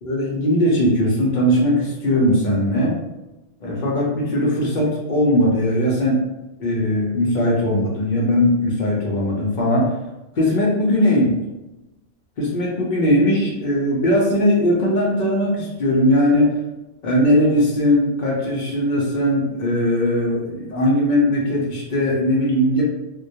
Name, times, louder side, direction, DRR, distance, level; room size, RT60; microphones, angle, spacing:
voice 1, 0.0-2.9 3.6-6.2 6.6-9.9 10.4-11.3 12.4-16.5 17.0-22.8, left 1 dB, 60° left, -4 dB, 0.5 m, -19 dB
2.2 x 2.1 x 2.7 m, 1.0 s
omnidirectional pair, 1.4 m